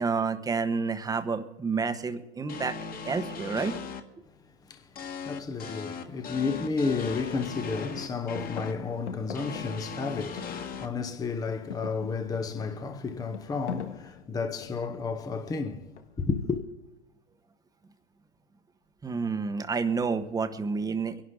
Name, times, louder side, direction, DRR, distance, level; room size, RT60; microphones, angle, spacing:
voice 1, 0.0-2.8 3.0-3.8 19.0-21.2, right 4 dB, 10° right, 1.1 m, -29 dB
sound 1, 2.5-4.0 5.0-8.7 9.3-10.9, left 5 dB, 25° left, 1.7 m, -38 dB
voice 2, 4.7-16.6, left 4 dB, 10° left, 0.9 m, -32 dB
sound 2, 8.0-11.1 11.4-15.0 16.0-16.4, left 7 dB, 90° left, 1.7 m, -42 dB
23.5 x 11.5 x 3.8 m
hypercardioid pair, 120°, 34 cm